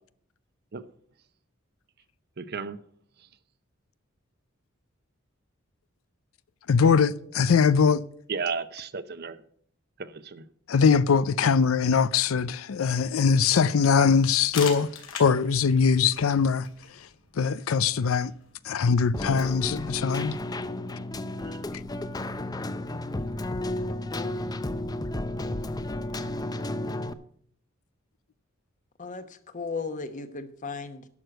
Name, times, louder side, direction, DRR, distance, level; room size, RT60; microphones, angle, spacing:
voice 1, 2.4-2.8 8.3-9.4 10.0-10.4 21.4-21.6, right 5 dB, 50° right, 0.7 m, -33 dB
voice 2, 6.7-8.0 10.7-14.9 15.2-16.7 17.4-18.3 18.6-20.4, left 6 dB, 90° left, 0.5 m, -22 dB
sound 1, 14.2-19.7, left 6 dB, 75° left, 2.7 m, -42 dB
Keyboard (musical), 19.1-27.1, left 1 dB, 20° left, 0.5 m, -32 dB
voice 3, 29.0-31.1, left 4 dB, 40° left, 1.0 m, -36 dB
11.0 x 6.3 x 7.7 m
head